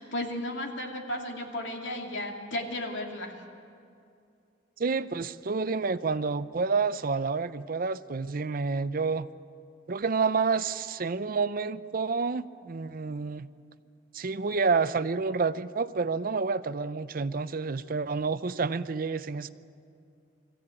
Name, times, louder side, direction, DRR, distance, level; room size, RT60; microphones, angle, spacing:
voice 1, 0.0-3.4, left 1 dB, 90° left, 1 dB, 2.6 m, -34 dB
voice 2, 4.8-9.3 9.9-13.5 14.1-19.5, right 4 dB, 50° right, 14 dB, 0.6 m, -29 dB
21.0 x 15.0 x 9.0 m, 2.5 s
head